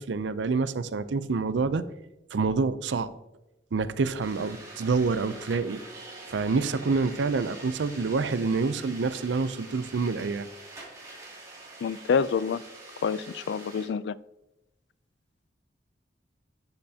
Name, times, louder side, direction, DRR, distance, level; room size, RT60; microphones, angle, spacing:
voice 1, 0.0-1.8 2.3-3.1 3.7-5.8 6.3-10.5, right 4 dB, 90° right, 14 dB, 0.5 m, -27 dB
sound 1, 4.2-13.9, right 2 dB, 20° right, 2.4 m, -45 dB
voice 2, 11.8-12.6 13.0-14.2, left 6 dB, 75° left, 18 dB, 0.3 m, -27 dB
10.5 x 7.7 x 2.8 m, 0.93 s
head